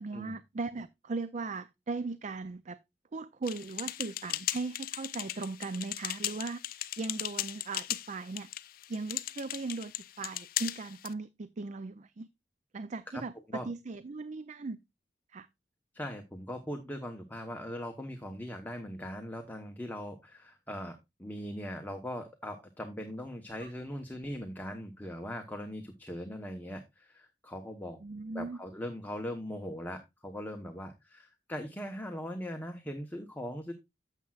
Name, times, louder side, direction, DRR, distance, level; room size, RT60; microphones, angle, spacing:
voice 1, 0.0-2.8 3.1-8.5 8.9-9.9 10.2-12.3 12.7-14.8 15.3-15.5 23.6-23.7 28.0-28.6, right 3 dB, 40° right, 0.5 m, -38 dB
sound 1, 3.4-11.1, left 13 dB, 55° left, 0.4 m, -37 dB
voice 2, 15.9-28.0 28.3-33.7, equal, 10° left, 1.0 m, -40 dB
12.0 x 7.5 x 2.4 m
head